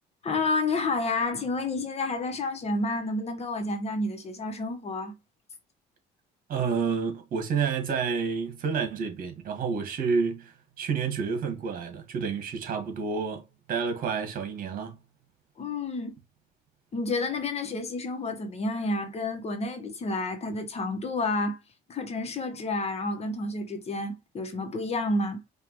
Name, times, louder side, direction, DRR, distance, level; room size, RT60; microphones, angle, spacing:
voice 1, 0.2-5.1 15.6-16.2 16.9-21.6 21.9-25.4, left 2 dB, 40° left, 1.3 m, -30 dB
voice 2, 6.5-15.0, right 5 dB, 55° right, 1.8 m, -29 dB
5.1 x 2.8 x 3.1 m
cardioid pair, 110°, 17 cm